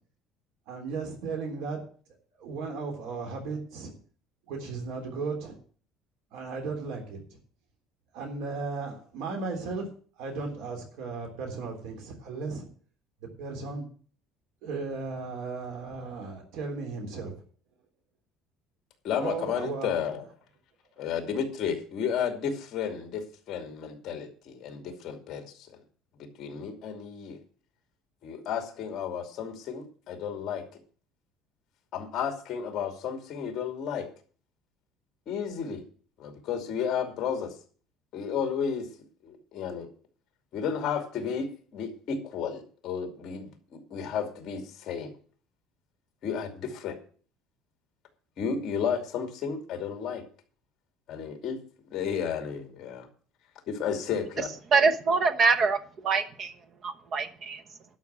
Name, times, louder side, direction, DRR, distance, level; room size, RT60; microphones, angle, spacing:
voice 1, 0.7-1.8 2.4-3.9 4.5-5.6 6.3-7.2 8.1-9.9 10.2-12.7 13.4-13.8 14.6-17.4 19.2-20.1, right 4 dB, 70° right, 3 dB, 3.6 m, -35 dB
voice 2, 19.0-20.2 21.0-25.8 26.2-27.4 28.2-30.8 31.9-34.1 35.3-35.8 36.2-37.5 38.1-38.9 39.2-39.9 40.5-45.1 46.2-47.0 48.4-50.2 51.1-51.6 51.9-53.1 53.7-54.5, left 7 dB, 40° left, 5 dB, 2.6 m, -32 dB
voice 3, 54.7-56.5 56.8-57.6, right 4 dB, 35° right, 10 dB, 1.0 m, -24 dB
12.0 x 5.8 x 8.8 m, 0.43 s
cardioid pair, 170°, 0 cm